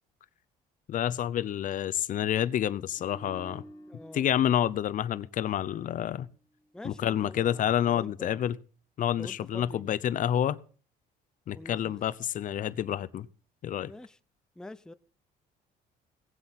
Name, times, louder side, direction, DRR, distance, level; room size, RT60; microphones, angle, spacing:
voice 1, 0.9-3.6 4.1-6.3 6.8-8.6 9.0-10.6 11.5-13.3 13.6-13.9, left 10 dB, 50° left, 0.7 m, -28 dB
sound 1, 3.0-6.2 6.5-6.8, equal, 20° left, 2.7 m, -52 dB
voice 2, 3.9-4.2 6.7-8.4 9.1-9.9 11.6-11.9 13.9-14.2 14.6-14.9, left 1 dB, 5° left, 0.6 m, -45 dB
17.5 x 7.9 x 5.8 m
cardioid pair, 110°, 17 cm